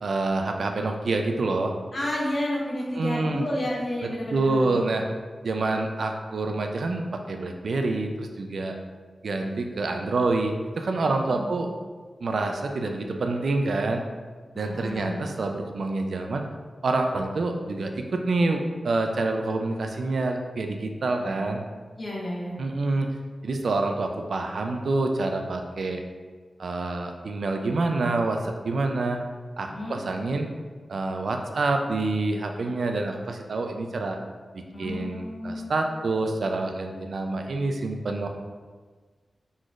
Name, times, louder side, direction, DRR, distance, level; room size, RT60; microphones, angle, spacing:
voice 1, 0.0-1.7 2.9-3.4 4.0-5.0 5.4-8.8 9.2-11.7 12.2-14.0 14.6-16.4 16.8-21.6 22.6-23.1 23.4-26.0 26.6-29.2 29.6-30.5 30.9-34.2 34.5-38.3, right 2 dB, 75° right, 4 dB, 0.4 m, -27 dB
voice 2, 1.9-4.8 11.0-11.6 14.5-15.3 21.2-21.4 22.0-22.6 29.7-30.0 34.7-35.8, left 1 dB, 50° left, -4 dB, 0.9 m, -31 dB
3.9 x 3.1 x 2.4 m, 1.4 s
wide cardioid pair, 110°, 0 cm